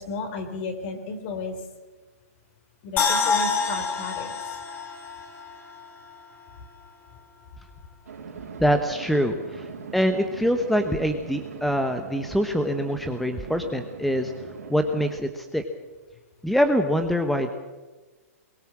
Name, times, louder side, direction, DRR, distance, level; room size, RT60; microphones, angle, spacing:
voice 1, 0.0-1.6 2.8-4.4, left 4 dB, 45° left, 7 dB, 4.1 m, -33 dB
sound 1, 3.0-6.2 6.5-6.6, left 4 dB, 25° left, 3.0 m, -27 dB
sound 2, 8.1-15.1, right 6 dB, 75° right, 4.4 m, -40 dB
voice 2, 8.6-14.3 14.7-15.6 16.4-17.5, equal, ahead, 6 dB, 1.1 m, -24 dB
22.5 x 16.5 x 7.5 m, 1.2 s
hypercardioid pair, 135°, 8 cm